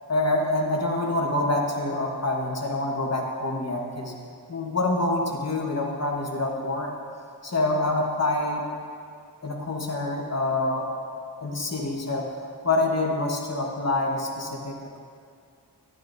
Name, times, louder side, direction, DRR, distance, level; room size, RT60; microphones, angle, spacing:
voice 1, 0.1-4.1 4.5-6.9 7.4-8.7 9.4-10.9 11.4-12.3 12.6-15.0, left 2 dB, 35° left, -1 dB, 1.4 m, -26 dB
12.5 x 10.5 x 2.7 m, 2.3 s
wide cardioid pair, 70°, 43 cm